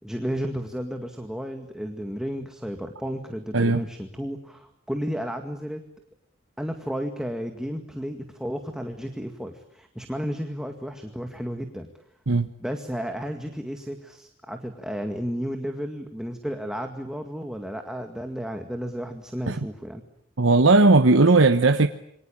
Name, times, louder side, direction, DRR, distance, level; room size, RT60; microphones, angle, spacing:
voice 1, 0.0-5.8 6.6-11.9 12.6-20.0, equal, 5° right, 5 dB, 2.0 m, -33 dB
voice 2, 3.5-3.8 12.3-12.5 19.5-19.6 20.4-21.9, right 3 dB, 90° right, 7 dB, 1.1 m, -17 dB
28.0 x 24.0 x 8.8 m, 0.73 s
head